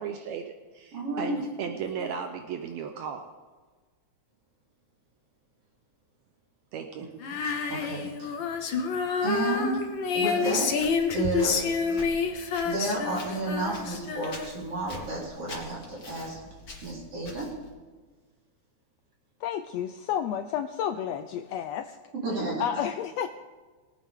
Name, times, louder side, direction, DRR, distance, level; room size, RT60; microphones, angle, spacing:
voice 1, 0.0-3.2 6.7-7.1, right 7 dB, 75° right, 5 dB, 1.9 m, -35 dB
voice 2, 0.9-1.5 7.0-8.3 9.2-9.9 10.1-10.8 11.1-12.0 12.6-16.4 16.8-17.6 22.1-22.6, right 2 dB, 50° right, -5 dB, 4.7 m, -32 dB
Female singing, 7.2-14.7, left 5 dB, 60° left, 1.3 m, -28 dB
Walk footsteps, 10.7-17.7, left 3 dB, 35° left, 2.1 m, -46 dB
voice 3, 19.4-22.0 22.6-23.3, left 9 dB, 80° left, 8 dB, 1.5 m, -31 dB
22.0 x 9.1 x 3.6 m, 1.4 s
omnidirectional pair, 3.4 m